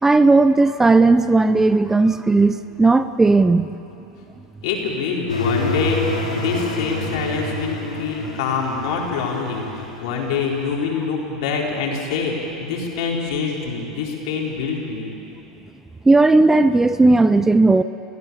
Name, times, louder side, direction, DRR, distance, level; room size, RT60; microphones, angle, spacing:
voice 1, 0.0-3.7 16.1-17.8, right 3 dB, 10° right, 13 dB, 0.7 m, -15 dB
voice 2, 4.6-6.0 6.3-15.1, left 5 dB, 65° left, -1 dB, 4.7 m, -25 dB
sound 1, 5.3-10.8, left 3 dB, 85° left, 3.6 m, -27 dB
30.0 x 16.0 x 7.2 m, 2.8 s
hypercardioid pair, 85°, 4 cm